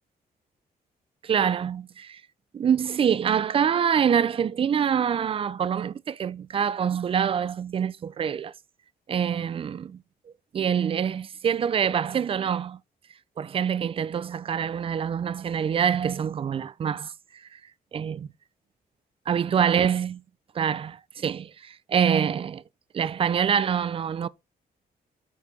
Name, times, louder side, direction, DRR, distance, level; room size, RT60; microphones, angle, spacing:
voice 1, 1.2-2.2 2.5-8.5 9.1-10.0 10.5-12.8 13.4-17.6 17.9-18.3 19.3-20.2 20.5-22.6 22.9-24.3, right 8 dB, 35° right, 0.4 m, -25 dB
8.3 x 4.7 x 5.3 m
cardioid pair, 140°, 17 cm